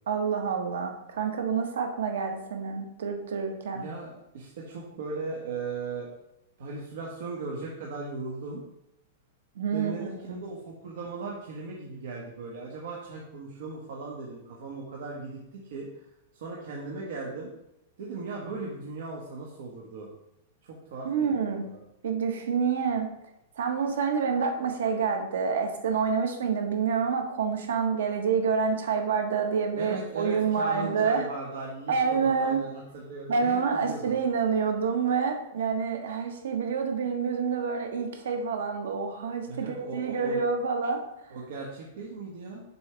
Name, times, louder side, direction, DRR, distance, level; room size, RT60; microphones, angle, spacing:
voice 1, 0.1-3.9 9.5-10.4 21.0-21.7 22.0-23.1 23.6-31.3 31.9-32.7 33.3-41.3, right 5 dB, 85° right, 4 dB, 1.3 m, -28 dB
voice 2, 3.7-6.1 6.6-8.6 9.7-16.1 16.3-17.5 18.0-20.1 20.6-21.5 29.8-34.2 39.5-40.4 41.3-42.6, right 3 dB, 55° right, -3 dB, 1.4 m, -38 dB
6.9 x 6.4 x 3.4 m, 0.85 s
supercardioid pair, 175°, 0 cm